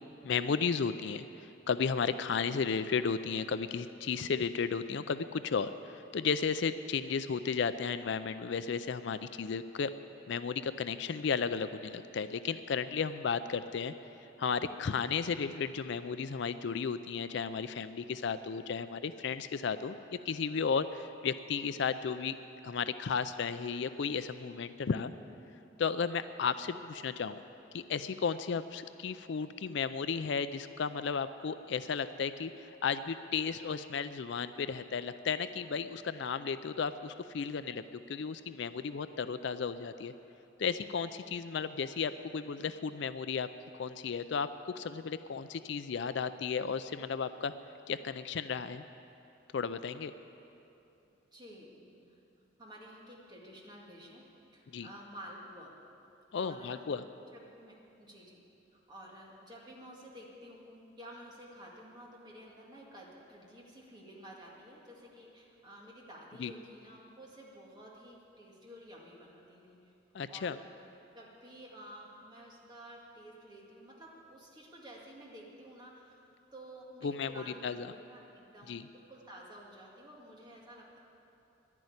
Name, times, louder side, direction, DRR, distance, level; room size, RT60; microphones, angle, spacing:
voice 1, 0.2-9.9 10.3-13.9 14.4-20.0 20.3-22.3 22.6-25.1 25.8-27.4 27.7-37.8 38.1-40.1 40.6-43.5 43.7-47.5 47.9-48.8 49.5-50.1 54.7-54.9 56.3-57.0 66.4-66.5 70.1-70.6 77.0-77.9 78.7-78.8, left 6 dB, 60° left, 12 dB, 0.4 m, -34 dB
voice 2, 51.3-52.0 52.6-54.2 54.5-55.7 56.3-56.9 57.3-58.4 58.7-69.9 70.3-70.6 71.1-81.0, equal, 20° right, -3 dB, 2.1 m, -51 dB
11.0 x 10.5 x 9.5 m, 2.8 s
head